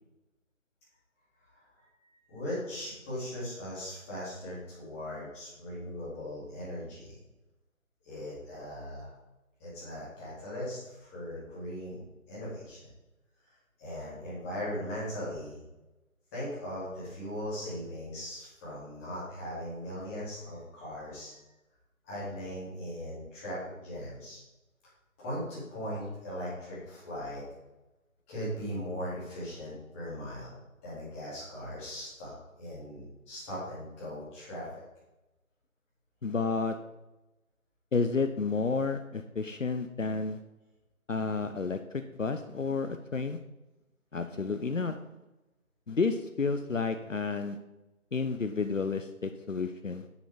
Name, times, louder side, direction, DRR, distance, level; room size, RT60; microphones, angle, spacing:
voice 1, 1.5-7.2 8.0-9.1 9.6-12.0 12.3-12.9 13.8-15.6 16.3-21.3 22.0-24.4 25.2-27.4 28.3-30.5 30.8-34.8, equal, 10° left, -9 dB, 3.3 m, -39 dB
voice 2, 36.2-36.8 37.9-40.4 41.1-43.4 44.1-45.0 45.9-47.6 48.1-50.0, left 4 dB, 65° left, 8 dB, 0.8 m, -31 dB
10.0 x 7.0 x 5.2 m, 1.0 s
figure-of-eight pair, 160°, 42 cm